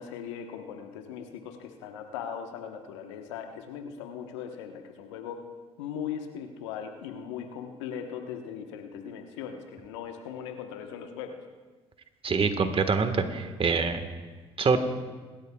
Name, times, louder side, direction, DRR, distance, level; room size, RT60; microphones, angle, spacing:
voice 1, 0.0-5.4 5.8-11.4, left 8 dB, 85° left, 5 dB, 1.1 m, -39 dB
voice 2, 12.2-14.0 14.6-14.8, right 5 dB, 40° right, 8 dB, 1.5 m, -25 dB
26.0 x 13.0 x 2.3 m, 1.4 s
hypercardioid pair, 55°, 15 cm